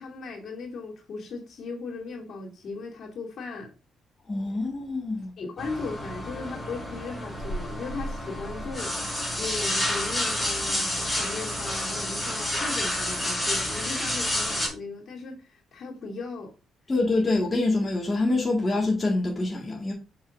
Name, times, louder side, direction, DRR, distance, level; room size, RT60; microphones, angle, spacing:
voice 1, 0.0-3.7 5.4-9.0 9.4-15.4 15.7-16.5, left 4 dB, 60° left, 2.6 m, -37 dB
voice 2, 4.3-5.3 16.9-19.9, left 2 dB, 25° left, 1.8 m, -25 dB
sound 1, 5.6-14.7, left 1 dB, ahead, 3.8 m, -29 dB
6.9 x 5.6 x 2.6 m
cardioid pair, 90°, 0 cm